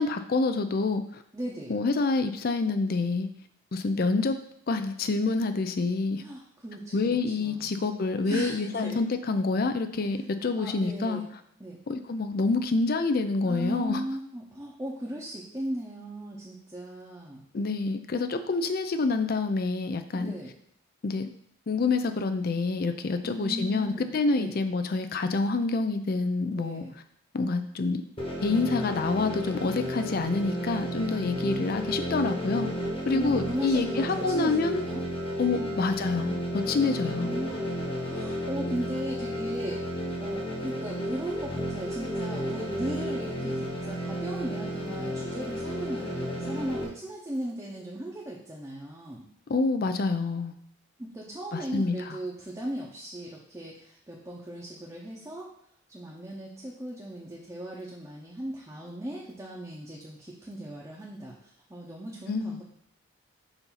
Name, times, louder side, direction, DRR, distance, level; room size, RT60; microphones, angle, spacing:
voice 1, 0.0-1.2 1.7-3.3 3.7-4.4 4.7-6.2 6.9-11.2 11.9-14.0 17.5-20.3 21.0-21.3 21.7-26.8 27.3-28.0 28.4-32.7 33.1-34.9 35.4-37.3 49.5-50.5 51.5-52.2 62.3-62.6, left 3 dB, 45° left, 9 dB, 0.4 m, -27 dB
voice 2, 1.3-1.8 6.2-7.8 8.2-9.0 10.6-11.3 11.6-11.8 13.4-17.5 20.1-20.5 23.2-24.5 26.5-27.0 33.1-35.0 35.5-35.8 36.8-37.5 38.0-49.2 51.0-55.5 55.9-62.6, right 1 dB, 15° right, -4 dB, 0.7 m, -37 dB
sound 1, 28.2-46.8, equal, 25° left, 1.1 m, -33 dB
7.0 x 2.7 x 5.7 m, 0.69 s
head